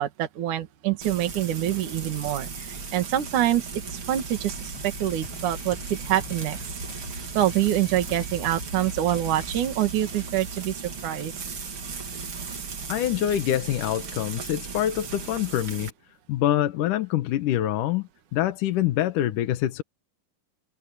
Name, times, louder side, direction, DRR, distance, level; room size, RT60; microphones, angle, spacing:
voice 1, 0.0-6.7 7.3-11.3, right 12 dB, 65° right, 3.2 m, -26 dB
Frying (food), 1.0-15.9, right 5 dB, 40° right, 2.8 m, -36 dB
sound 1, 4.5-9.7, left 2 dB, 45° left, 8.9 m, -43 dB
voice 2, 12.9-15.9 16.3-19.8, left 12 dB, 70° left, 2.5 m, -25 dB
omnidirectional pair, 4.0 m